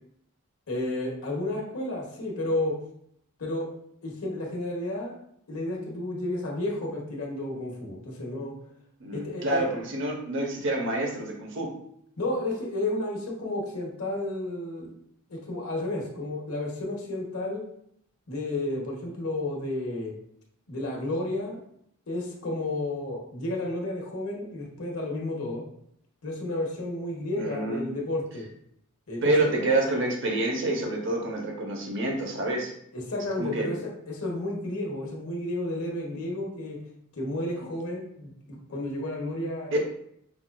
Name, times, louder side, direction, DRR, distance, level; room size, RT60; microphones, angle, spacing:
voice 1, 0.7-2.8 3.4-3.7 4.0-5.1 5.5-8.6 9.1-9.6 12.2-14.9 15.3-17.6 18.3-20.1 20.7-21.6 22.1-25.6 26.2-28.4 29.1-29.3 32.9-36.8 37.1-39.7, left 1 dB, 90° left, -1 dB, 1.0 m, -32 dB
voice 2, 9.0-11.7 27.4-27.9 29.2-32.7 33.4-33.7 39.7-39.8, right 2 dB, 60° right, 1 dB, 0.7 m, -27 dB
5.5 x 2.3 x 2.2 m, 0.71 s
head